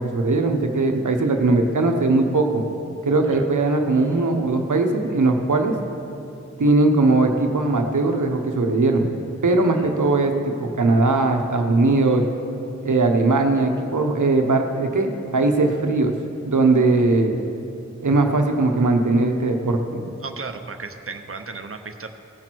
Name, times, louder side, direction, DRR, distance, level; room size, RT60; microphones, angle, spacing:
voice 1, 0.0-2.6 3.0-5.7 6.6-10.3 10.6-12.2 12.8-16.1 16.4-17.3 18.0-20.1, right 3 dB, 85° right, 4 dB, 0.9 m, -19 dB
voice 2, 20.2-22.1, right 4 dB, 45° right, 6 dB, 0.8 m, -35 dB
17.5 x 6.1 x 4.5 m, 2.8 s
wide cardioid pair, 65°, 30 cm